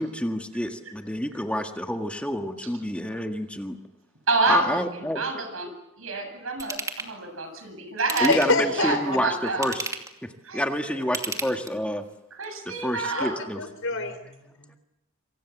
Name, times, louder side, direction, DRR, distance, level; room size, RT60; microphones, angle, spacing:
voice 1, 0.0-3.8 4.5-5.2 8.2-9.9 10.2-12.0 12.7-13.6, equal, 5° left, 5 dB, 1.8 m, -28 dB
voice 2, 4.3-5.7 6.0-8.3 8.7-9.7 10.4-10.6 10.9-11.0 12.4-13.3, right 3 dB, 80° right, 6 dB, 7.8 m, -28 dB
Ratchet pawl / Tools, 6.6-7.1 8.0-8.7 9.5-10.2 11.0-11.9 12.4-12.5, right 3 dB, 15° right, 2.6 m, -33 dB
voice 3, 8.3-9.0 13.1-13.3 13.6-14.8, left 3 dB, 70° left, 9 dB, 4.7 m, -26 dB
27.0 x 26.0 x 7.4 m, 0.85 s
head